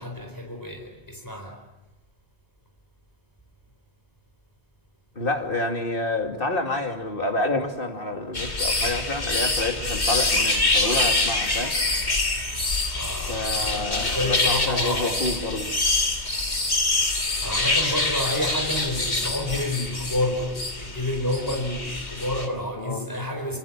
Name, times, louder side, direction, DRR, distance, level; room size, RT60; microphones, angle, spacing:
voice 1, 0.0-1.6 12.9-15.1 17.4-23.6, left 1 dB, 15° left, 4.8 m, -29 dB
voice 2, 5.2-11.8 13.3-15.7 22.8-23.1, left 2 dB, 55° left, 2.9 m, -28 dB
sound 1, 8.3-22.5, left 2 dB, 80° left, 3.4 m, -25 dB
27.5 x 27.0 x 7.5 m
omnidirectional pair, 1.1 m